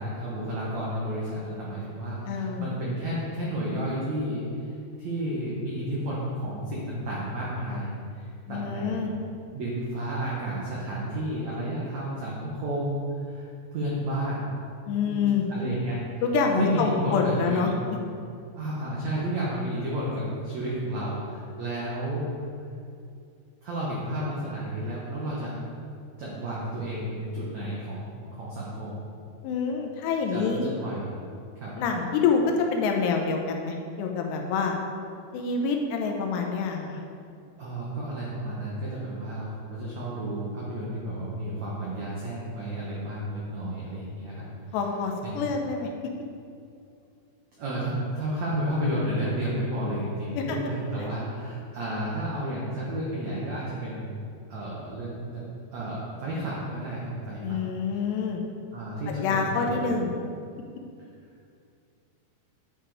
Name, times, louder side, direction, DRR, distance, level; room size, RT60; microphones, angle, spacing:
voice 1, 0.0-9.0 9.5-14.6 15.0-16.2 16.6-17.9 18.5-22.3 23.6-25.6 26.2-29.0 30.3-31.1 31.5-31.8 37.6-44.4 45.2-45.3 47.6-54.2 54.5-55.4 55.7-57.6 57.9-58.0 58.7-59.9, right 1 dB, 90° right, -6 dB, 1.5 m, -32 dB
voice 2, 2.3-2.7 8.5-9.1 14.9-15.5 16.2-17.7 29.4-30.8 31.8-34.8 35.3-37.0 44.7-45.9 50.4-50.6 57.4-58.4 59.2-60.2, left 5 dB, 80° left, 2 dB, 2.7 m, -26 dB
9.8 x 5.0 x 4.8 m, 2.4 s
omnidirectional pair, 5.1 m